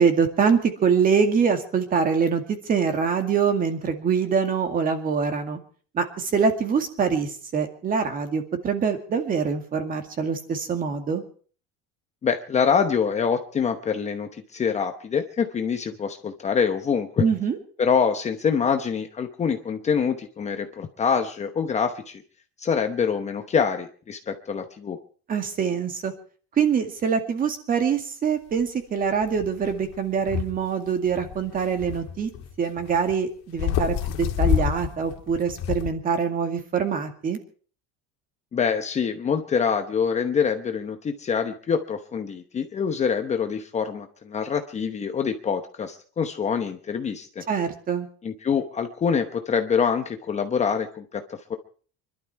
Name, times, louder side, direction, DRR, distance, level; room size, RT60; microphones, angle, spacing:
voice 1, 0.0-5.6 5.9-11.2 17.2-17.6 25.3-26.1 26.6-32.3 32.6-37.4 47.5-48.1, right 6 dB, 25° right, 7 dB, 2.1 m, -24 dB
voice 2, 12.2-17.3 17.8-22.2 22.6-25.0 38.5-47.4 48.2-51.6, left 6 dB, 20° left, 6 dB, 0.9 m, -25 dB
sound 1, 28.6-28.7 29.2-30.6 30.9-33.1 33.5-35.9, left 10 dB, 55° left, 2.0 m, -28 dB
25.0 x 12.0 x 4.7 m, 0.43 s
cardioid pair, 170°, 31 cm